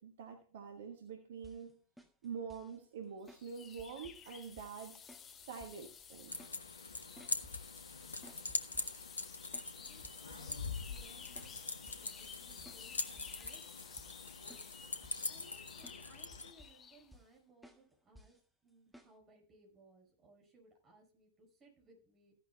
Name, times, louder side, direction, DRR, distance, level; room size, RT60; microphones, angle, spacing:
voice 1, 0.0-1.8 2.2-5.0 5.3-6.3, right 6 dB, 60° right, 5 dB, 1.4 m, -46 dB
sound 1, 1.4-1.7 2.0-2.8 3.3-3.5 3.8-4.3 4.6-4.8 5.1-5.3 5.6-5.9 6.1-6.6 6.9-7.7 8.2-9.8 10.0-10.5 10.8-11.1 11.4-11.6 11.9-12.1 12.7-12.9 13.2-13.7 14.0-14.2 14.5-15.6 15.8-16.0 16.3-16.9 17.1-17.4 17.6-17.8 18.2-18.4 18.9-19.1, equal, ahead, 1.6 m, -59 dB
sound 2, 3.2-17.1, left 7 dB, 25° left, 1.0 m, -53 dB
sound 3, 6.3-16.5, left 3 dB, 80° left, 1.0 m, -43 dB
voice 2, 9.8-13.6 14.4-14.7 15.3-18.4 18.6-22.3, right 1 dB, 25° right, 2 dB, 5.3 m, -64 dB
15.0 x 11.5 x 2.2 m, 0.38 s
figure-of-eight pair, 90°, 0 cm